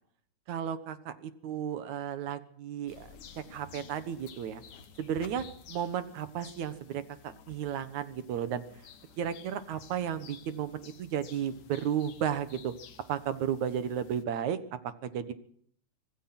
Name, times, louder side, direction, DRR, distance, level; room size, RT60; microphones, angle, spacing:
voice 1, 0.5-3.2 3.5-4.6 5.0-8.6 9.2-12.7 13.1-14.6 15.0-15.3, right 9 dB, 70° right, 11 dB, 2.6 m, -33 dB
sound 1, 2.9-14.2, left 6 dB, 80° left, 3.3 m, -53 dB
25.5 x 19.0 x 6.0 m, 0.63 s
omnidirectional pair, 3.6 m